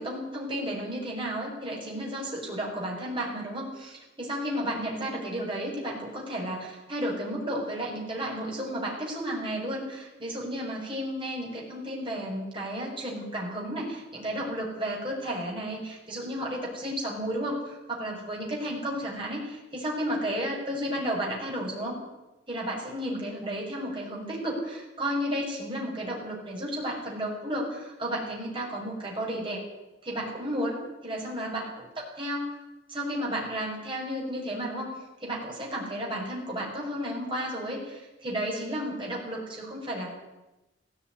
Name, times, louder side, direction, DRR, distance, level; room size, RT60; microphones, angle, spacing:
voice 1, 0.0-22.0 22.5-29.6 30.0-30.8 31.0-32.6 32.9-34.9 35.2-40.1, equal, 25° right, -3 dB, 6.5 m, -33 dB
17.0 x 16.0 x 9.6 m, 1.0 s
head